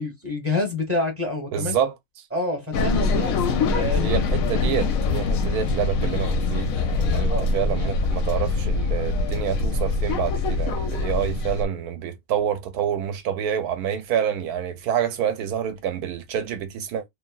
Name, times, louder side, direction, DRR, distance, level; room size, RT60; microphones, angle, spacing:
voice 1, 0.0-1.8 2.3-3.3 3.7-4.3 7.1-7.5, left 2 dB, 15° right, 0.6 m, -27 dB
voice 2, 1.5-1.9 2.8-2.9 4.0-17.0, right 9 dB, 70° right, 1.0 m, -27 dB
sound 1, 2.7-11.6, left 3 dB, 70° left, 0.8 m, -24 dB
3.2 x 2.3 x 2.2 m
omnidirectional pair, 1.8 m